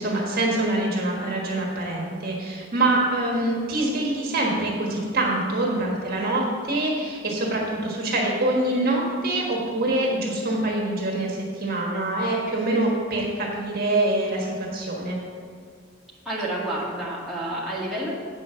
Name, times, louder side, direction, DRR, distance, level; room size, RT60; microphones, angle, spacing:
voice 1, 0.0-15.2, right 2 dB, 45° right, -2 dB, 1.4 m, -25 dB
voice 2, 16.3-18.1, right 1 dB, ahead, -8 dB, 1.7 m, -29 dB
8.3 x 5.4 x 6.7 m, 2.2 s
head